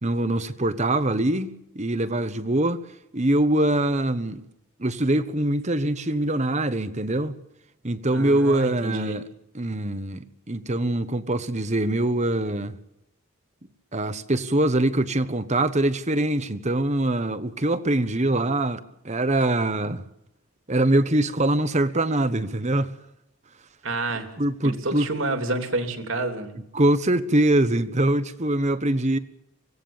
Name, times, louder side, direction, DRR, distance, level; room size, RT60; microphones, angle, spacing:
voice 1, 0.0-2.8 3.1-4.4 4.8-7.4 7.8-9.2 9.5-12.8 13.9-20.0 20.7-23.0 24.4-25.1 26.7-29.2, right 1 dB, 30° right, 1.2 m, -23 dB
voice 2, 8.1-9.2 23.8-24.3 24.6-26.6, right 2 dB, 60° right, 3.2 m, -29 dB
25.0 x 17.5 x 7.3 m
head